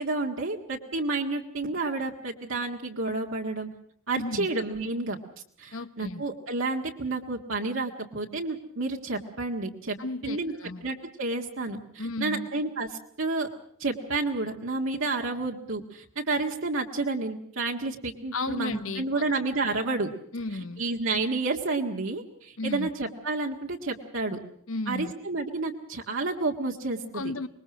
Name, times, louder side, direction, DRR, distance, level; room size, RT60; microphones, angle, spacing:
voice 1, 0.0-3.7 4.1-5.2 5.6-10.0 10.2-10.5 10.8-13.5 13.8-20.1 20.8-24.4 24.9-27.2, right 3 dB, 60° right, 1.8 m, -30 dB
voice 2, 4.1-4.5 5.7-6.2 10.0-10.9 12.0-12.5 18.3-19.2 20.3-20.8 22.6-22.9 24.7-25.1 27.1-27.5, left 2 dB, 65° left, 1.2 m, -34 dB
25.0 x 21.5 x 6.2 m
head